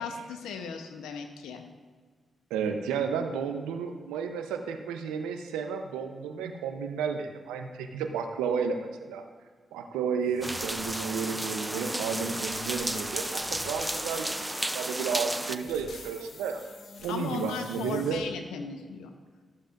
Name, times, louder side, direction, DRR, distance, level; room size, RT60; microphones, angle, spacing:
voice 1, 0.0-1.6 17.1-19.1, left 6 dB, 85° left, 6 dB, 0.8 m, -37 dB
voice 2, 2.5-9.2 9.7-16.6 17.0-18.2, right 6 dB, 90° right, 5 dB, 0.7 m, -32 dB
sound 1, 10.3-18.2, left 3 dB, 65° left, 1.4 m, -46 dB
sound 2, 10.4-15.6, right 1 dB, 15° right, 0.5 m, -33 dB
14.0 x 7.4 x 2.5 m, 1.5 s
supercardioid pair, 40°, 0 cm